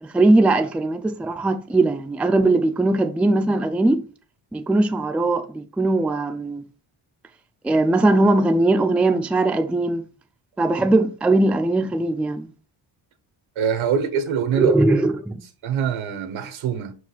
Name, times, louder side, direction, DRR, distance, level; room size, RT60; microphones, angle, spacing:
voice 1, 0.0-4.0 4.5-6.6 7.6-10.1 10.6-12.5 14.6-15.4, right 2 dB, 5° right, 0.3 m, -20 dB
voice 2, 13.6-14.8 15.6-16.9, right 7 dB, 85° right, 1.2 m, -24 dB
5.5 x 5.0 x 4.0 m
wide cardioid pair, 145°, 47 cm